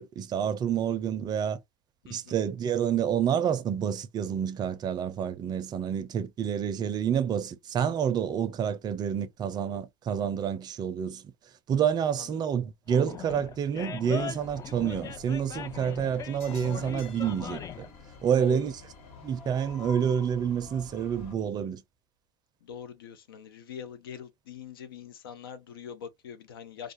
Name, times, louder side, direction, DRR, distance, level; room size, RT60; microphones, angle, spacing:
voice 1, 0.0-1.6 2.1-11.2 11.7-17.9 18.2-18.7 19.2-21.8, right 8 dB, 35° right, 0.4 m, -28 dB
voice 2, 2.0-2.4 12.2-12.4 18.4-18.7 22.6-26.9, left 7 dB, 85° left, 0.6 m, -43 dB
Animal, 12.9-17.9, left 8 dB, 30° left, 0.4 m, -40 dB
sound 1, 14.4-21.3, left 5 dB, 60° left, 1.3 m, -48 dB
2.4 x 2.3 x 2.6 m
hypercardioid pair, 90°, 12 cm